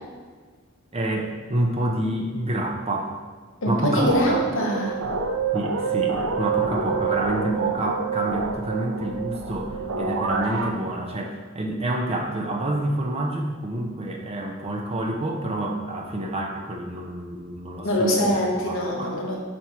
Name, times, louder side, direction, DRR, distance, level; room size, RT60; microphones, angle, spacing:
voice 1, 0.9-3.2 3.7-4.4 5.5-19.1, right 1 dB, 30° right, 1 dB, 0.7 m, -28 dB
voice 2, 3.6-5.0 17.8-19.4, equal, 65° left, -1 dB, 1.3 m, -23 dB
sound 1, 4.0-10.7, right 5 dB, 80° right, 0.6 m, -27 dB
4.7 x 4.4 x 5.7 m, 1.5 s
head